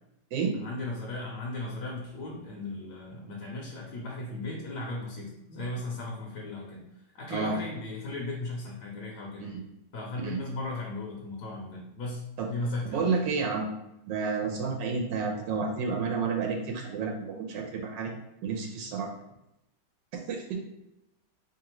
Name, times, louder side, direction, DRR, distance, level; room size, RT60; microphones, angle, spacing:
voice 1, 0.5-6.8 7.1-9.5 9.9-12.2 12.5-13.1, left 2 dB, 75° left, -2 dB, 1.3 m, -36 dB
voice 2, 12.8-13.7 14.1-18.1 18.4-19.1 20.3-20.7, right 5 dB, 90° right, 1 dB, 1.3 m, -30 dB
3.7 x 3.3 x 3.0 m, 0.85 s
omnidirectional pair, 1.9 m